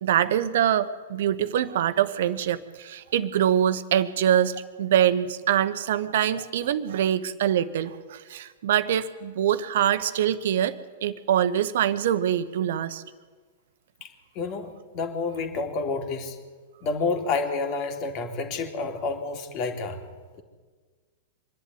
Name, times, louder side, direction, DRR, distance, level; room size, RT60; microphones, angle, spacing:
voice 1, 0.0-13.0, right 10 dB, 60° right, 13 dB, 1.1 m, -24 dB
voice 2, 14.3-16.4 16.8-20.0, left 4 dB, 40° left, 5 dB, 2.9 m, -29 dB
25.0 x 11.0 x 9.5 m, 1.4 s
figure-of-eight pair, 100°, 0 cm